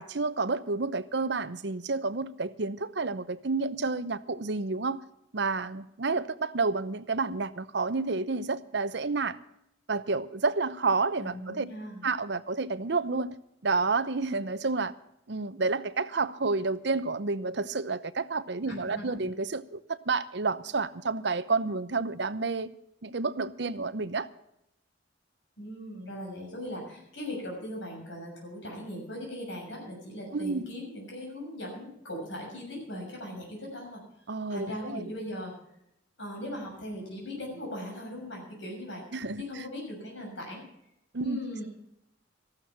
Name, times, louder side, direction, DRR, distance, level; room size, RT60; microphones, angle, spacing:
voice 1, 0.0-5.0 5.3-9.4 9.9-11.7 12.0-13.3 13.6-14.9 15.3-22.7 23.0-24.3 30.3-30.7 34.3-35.0 39.1-39.6 41.1-41.4, right 3 dB, 60° right, 0.8 m, -30 dB
voice 2, 11.2-12.0 18.9-19.3 25.6-34.0 34.5-35.5 36.2-39.0 39.4-40.6 41.2-41.7, left 1 dB, 75° left, 6.8 m, -39 dB
14.5 x 12.5 x 5.8 m
head